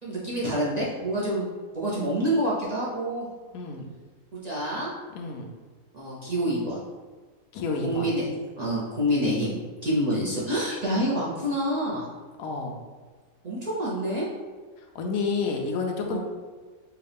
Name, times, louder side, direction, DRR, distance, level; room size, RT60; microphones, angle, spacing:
voice 1, 0.0-1.5 1.7-3.3 4.4-4.9 5.9-6.8 7.8-8.3 8.6-9.5 9.8-12.1 13.4-14.3 16.1-16.2, equal, 40° right, -7 dB, 0.7 m, -27 dB
voice 2, 3.5-3.8 5.1-5.5 7.5-8.1 9.8-10.0 12.4-12.8 14.9-16.2, left 4 dB, 85° left, 2 dB, 1.1 m, -30 dB
4.7 x 2.4 x 3.4 m, 1.4 s
omnidirectional pair, 1.4 m